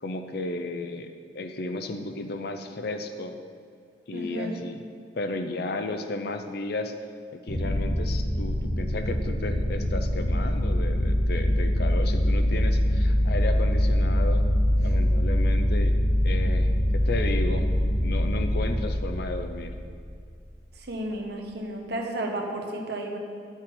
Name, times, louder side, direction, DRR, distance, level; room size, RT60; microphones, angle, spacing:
voice 1, 0.0-3.3 4.1-4.8 5.2-6.9 7.3-14.4 14.8-16.0 16.2-17.7 18.0-19.7, left 2 dB, 60° left, 7 dB, 0.6 m, -33 dB
voice 2, 4.1-4.5 20.8-23.2, right 1 dB, 60° right, 2 dB, 1.1 m, -32 dB
sound 1, 7.5-20.4, left 1 dB, 35° left, 1.4 m, -24 dB
10.5 x 7.2 x 3.8 m, 2.3 s
head